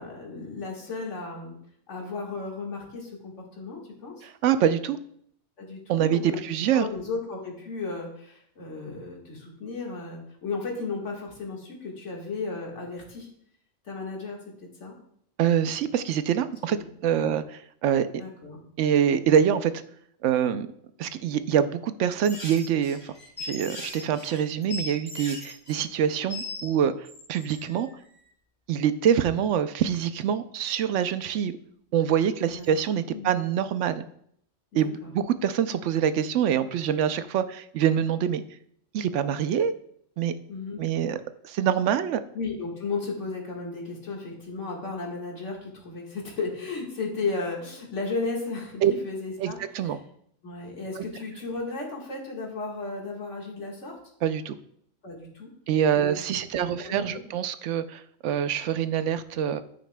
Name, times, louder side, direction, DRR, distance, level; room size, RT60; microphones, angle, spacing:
voice 1, 0.0-1.5 1.9-4.3 5.6-6.4 6.7-13.3 13.9-14.4 14.8-15.0 16.7-16.9 17.1-17.4 18.1-18.6 32.4-32.7 33.1-33.4 34.7-35.1 40.5-40.8 42.3-49.6 50.4-54.0 55.0-55.5 56.0-56.2 56.8-57.2, left 3 dB, 80° left, -1 dB, 2.0 m, -34 dB
voice 2, 4.2-5.0 5.9-6.9 15.4-16.8 17.0-17.4 17.8-18.1 18.8-19.8 20.2-20.7 21.0-23.1 23.4-27.9 28.7-31.5 31.9-34.0 34.7-38.4 38.9-39.7 40.2-40.3 40.8-41.2 41.4-42.2 48.8-48.9 49.4-50.0 51.0-51.1 54.2-54.6 55.7-59.6, right 9 dB, 80° right, 12 dB, 0.9 m, -25 dB
sound 1, 22.2-26.7 27.0-27.9 32.6-32.8, left 2 dB, 30° left, 3.1 m, -39 dB
9.1 x 9.0 x 2.2 m, 0.68 s
omnidirectional pair, 1.2 m